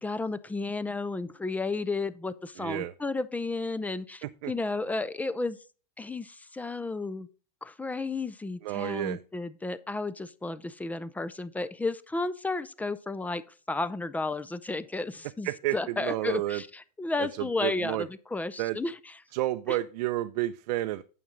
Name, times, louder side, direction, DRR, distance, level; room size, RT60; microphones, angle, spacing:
voice 1, 0.0-5.6 6.0-7.3 7.6-13.4 13.7-19.2 19.7-19.8, left 3 dB, 10° left, 15 dB, 0.4 m, -33 dB
voice 2, 2.6-2.9 4.2-4.5 8.6-9.2 15.4-16.6 17.2-18.0 18.6-18.8 19.3-21.0, right 15 dB, 80° right, 9 dB, 0.6 m, -31 dB
9.2 x 7.3 x 3.8 m, 0.36 s
supercardioid pair, 135°, 20 cm